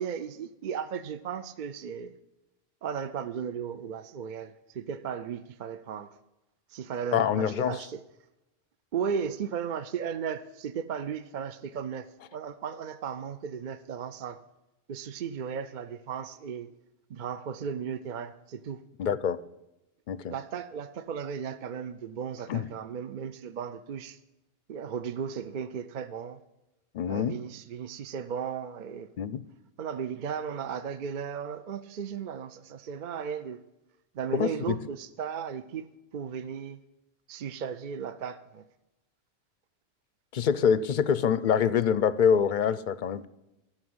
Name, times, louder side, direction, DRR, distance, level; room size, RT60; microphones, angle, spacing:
voice 1, 0.0-2.1 2.8-6.2 6.7-8.0 8.9-14.4 14.9-16.7 17.1-18.8 20.3-24.2 24.7-26.4 27.0-29.1 29.8-33.6 34.1-35.9 36.1-36.8 37.3-38.7, right 7 dB, 55° right, 0.6 m, -35 dB
voice 2, 7.1-7.8 19.0-19.4 20.1-20.3 22.5-22.7 26.9-27.3 29.2-29.4 34.3-34.8 40.3-43.3, left 7 dB, 55° left, 0.6 m, -25 dB
13.0 x 6.5 x 7.8 m
omnidirectional pair, 1.2 m